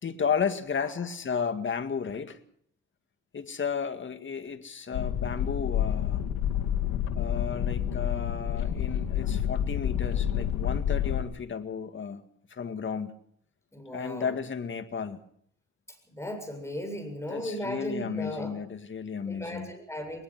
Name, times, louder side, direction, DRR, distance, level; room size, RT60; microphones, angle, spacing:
voice 1, 0.0-2.4 3.3-6.2 7.2-12.2 12.5-13.2 13.9-15.2 17.3-19.7, left 6 dB, 40° left, 2.1 m, -33 dB
sound 1, 4.9-11.2, left 10 dB, 85° left, 2.4 m, -29 dB
voice 2, 13.7-14.4 16.1-18.5 19.3-20.2, equal, 10° left, 7.4 m, -36 dB
22.0 x 20.5 x 6.1 m
cardioid pair, 90°, 30 cm